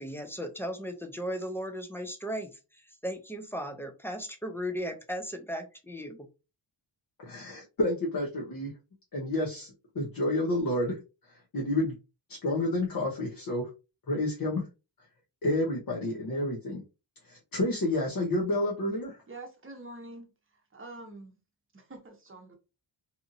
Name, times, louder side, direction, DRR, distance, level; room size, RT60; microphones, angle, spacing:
voice 1, 0.0-6.3, equal, 5° left, 0.4 m, -36 dB
voice 2, 7.2-8.7 9.1-11.0 11.3-12.0 12.4-13.7 14.1-14.7 15.4-16.8 17.2-19.2, left 1 dB, 45° left, 0.8 m, -30 dB
voice 3, 19.3-20.3 20.7-21.3 21.7-22.6, right 2 dB, 25° right, 0.8 m, -45 dB
2.9 x 2.6 x 2.5 m
wide cardioid pair, 125°, 46 cm